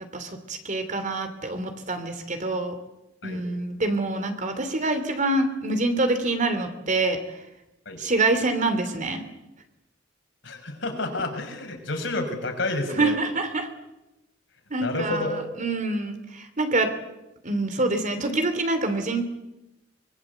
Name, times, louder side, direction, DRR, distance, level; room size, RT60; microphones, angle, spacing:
voice 1, 0.1-2.8 3.2-7.2 8.0-9.2 12.9-13.7 14.7-16.9 17.4-19.3, right 2 dB, 40° right, 8 dB, 3.2 m, -26 dB
voice 2, 10.4-13.2 14.8-15.5, left 2 dB, 65° left, 3 dB, 6.1 m, -29 dB
24.0 x 22.5 x 8.3 m, 0.97 s
head